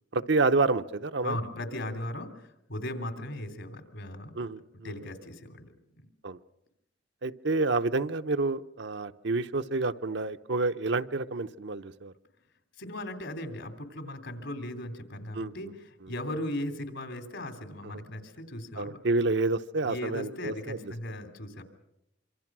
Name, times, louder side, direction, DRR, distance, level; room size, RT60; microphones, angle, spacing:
voice 1, 0.1-1.4 4.4-4.9 6.2-6.4 7.2-12.1 15.3-15.7 18.8-20.9, right 3 dB, 70° right, 9 dB, 0.8 m, -29 dB
voice 2, 1.2-4.4 4.8-6.0 12.8-19.0 19.8-21.6, left 1 dB, 75° left, 8 dB, 3.1 m, -37 dB
26.0 x 25.0 x 6.1 m, 0.83 s
head